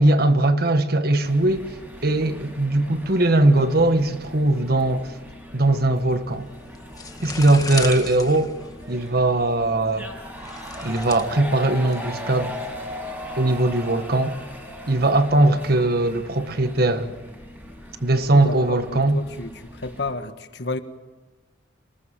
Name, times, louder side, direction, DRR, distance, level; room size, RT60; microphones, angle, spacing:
voice 1, 0.0-1.7 2.0-5.1 5.5-6.5 7.2-8.5 8.9-10.1 10.8-12.6 13.4-14.4 14.9-17.1 18.0-19.2, right 2 dB, 55° right, 1.6 m, -20 dB
sound 1, 1.2-20.1, left 1 dB, 10° right, 5.7 m, -39 dB
sound 2, 6.3-13.9, left 4 dB, 20° left, 1.5 m, -37 dB
voice 2, 18.3-20.8, left 3 dB, 65° left, 1.6 m, -32 dB
27.0 x 19.5 x 7.5 m
head